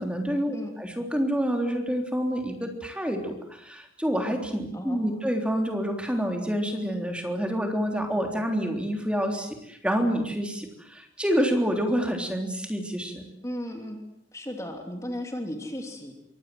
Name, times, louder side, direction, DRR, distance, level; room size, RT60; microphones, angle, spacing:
voice 1, 0.0-13.2, equal, 5° right, 3 dB, 3.5 m, -28 dB
voice 2, 4.7-5.2 13.4-14.0 14.3-16.1, equal, 15° left, 3 dB, 3.1 m, -35 dB
26.5 x 24.0 x 7.8 m, 0.78 s
head